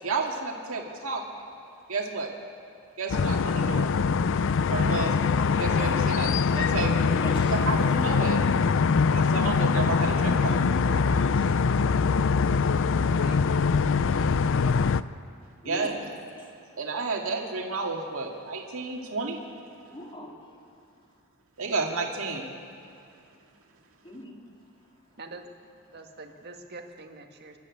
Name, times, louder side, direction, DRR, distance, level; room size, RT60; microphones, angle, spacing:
voice 1, 0.0-1.5 1.9-2.3 3.0-3.9 4.7-5.3 5.6-7.1 7.5-8.4 9.1-10.7 15.6-16.1 16.8-19.4 21.6-22.5, right 3 dB, 70° right, 0 dB, 2.2 m, -31 dB
sound 1, 3.1-15.0, left 5 dB, 60° left, 0.5 m, -23 dB
voice 2, 7.2-7.8 11.3-11.5 15.6-15.9 19.9-20.6 24.0-24.4, left 1 dB, 25° left, -1 dB, 3.0 m, -39 dB
voice 3, 10.8-11.5 13.1-13.7 14.1-14.5 25.2-25.5 25.9-27.6, right 2 dB, 50° right, 4 dB, 1.7 m, -44 dB
26.0 x 12.0 x 8.5 m, 2.5 s
head